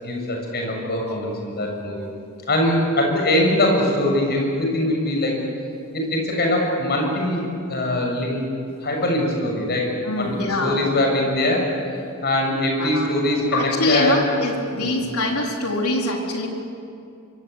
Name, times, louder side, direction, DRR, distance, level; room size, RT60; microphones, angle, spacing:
voice 1, 0.0-2.0 2.5-5.4 5.9-7.4 7.7-8.4 8.8-11.6 12.2-14.2 14.8-15.0, left 1 dB, 45° left, 1 dB, 7.2 m, -22 dB
voice 2, 10.0-10.8 12.8-13.1 13.5-16.5, left 2 dB, 75° left, 0 dB, 4.3 m, -24 dB
25.5 x 25.0 x 8.4 m, 2.5 s
head